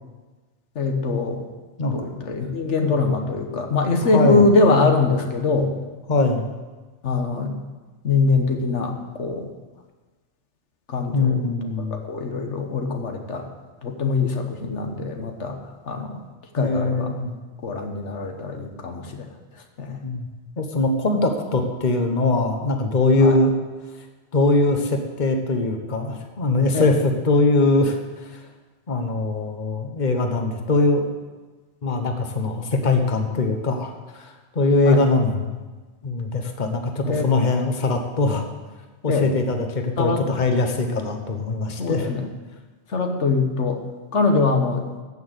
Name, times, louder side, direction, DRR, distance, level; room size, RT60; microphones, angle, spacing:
voice 1, 0.7-1.4 1.9-5.7 7.0-7.5 8.0-9.5 10.9-11.4 11.9-13.5 13.8-15.6 15.8-16.2 16.5-17.2 17.6-19.3 19.8-20.0 23.2-23.4 26.7-26.9 34.8-35.0 37.0-37.3 39.1-39.3 40.0-40.2 41.8-42.2 42.9-43.8 44.1-44.8, left 3 dB, 85° left, 4 dB, 1.6 m, -22 dB
voice 2, 4.0-4.4 6.1-6.5 11.1-12.0 16.6-17.3 20.0-20.3 20.6-23.5 24.3-28.4 28.9-31.1 31.8-35.6 36.0-38.5 39.0-42.1, left 2 dB, 40° left, 4 dB, 1.3 m, -22 dB
14.5 x 6.2 x 8.1 m, 1.3 s
omnidirectional pair, 1.2 m